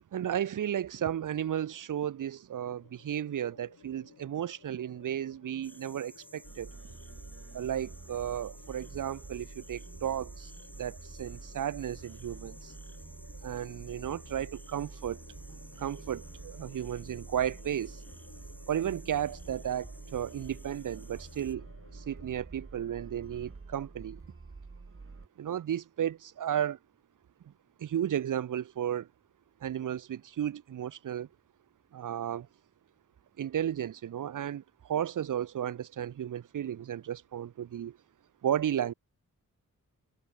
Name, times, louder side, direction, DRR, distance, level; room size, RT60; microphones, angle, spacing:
voice 1, 0.0-6.7 7.5-10.5 10.8-12.7 13.4-15.2 15.8-18.0 18.7-21.7 21.9-24.2 25.4-26.8 27.5-27.6 27.8-29.1 29.6-31.3 31.9-32.5 33.4-38.0 38.4-38.9, right 10 dB, 70° right, 0.6 m, -34 dB
sound 1, 2.7-22.4, left 6 dB, 80° left, 3.4 m, -58 dB
sound 2, 5.6-21.6, left 1 dB, 5° left, 2.7 m, -56 dB
sound 3, 6.4-25.3, right 4 dB, 40° right, 2.8 m, -48 dB
wide cardioid pair, 85°, 32 cm